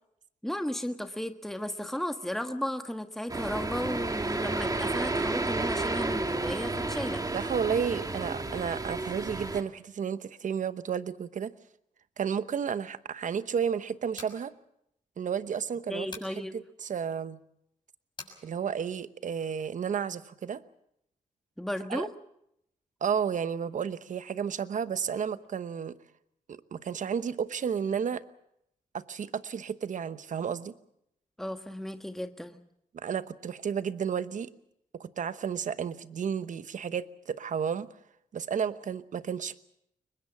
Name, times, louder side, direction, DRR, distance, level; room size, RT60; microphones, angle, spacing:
voice 1, 0.4-7.2 15.9-16.6 21.6-22.1 31.4-32.6, left 1 dB, ahead, 7 dB, 1.4 m, -34 dB
sound 1, 3.3-9.6, right 2 dB, 25° right, 2.0 m, -31 dB
voice 2, 7.3-11.5 12.2-14.5 15.2-16.1 16.5-17.4 18.4-20.6 21.9-22.1 23.0-26.0 26.5-28.2 28.9-30.7 32.9-34.5 34.9-37.9 38.3-39.6, right 7 dB, 65° right, 13 dB, 1.0 m, -32 dB
sound 2, 14.1-14.4 16.1-16.4 18.2-18.4, left 3 dB, 35° left, 6.6 m, -43 dB
23.0 x 21.0 x 7.2 m, 0.77 s
cardioid pair, 70°, 14 cm